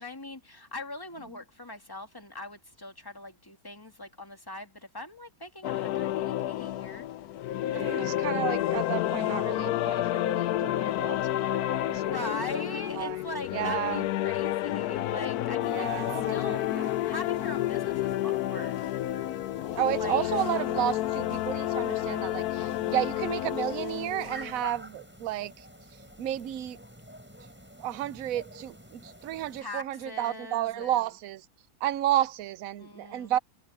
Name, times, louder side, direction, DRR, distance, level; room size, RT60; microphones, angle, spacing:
voice 1, 0.0-7.1 7.7-7.8 8.2-8.3 11.7-19.0 20.0-20.3 29.6-31.0 32.8-33.4, left 2 dB, 10° left, 2.1 m, -41 dB
sound 1, 5.6-24.6, left 14 dB, 70° left, 1.0 m, -30 dB
voice 2, 7.6-12.6 12.9-13.2 13.5-14.1 15.7-16.9 19.7-26.8 27.8-31.5 31.8-33.4, right 12 dB, 65° right, 0.9 m, -32 dB
sound 2, 15.6-29.6, equal, 5° right, 7.8 m, -49 dB
omnidirectional pair, 2.0 m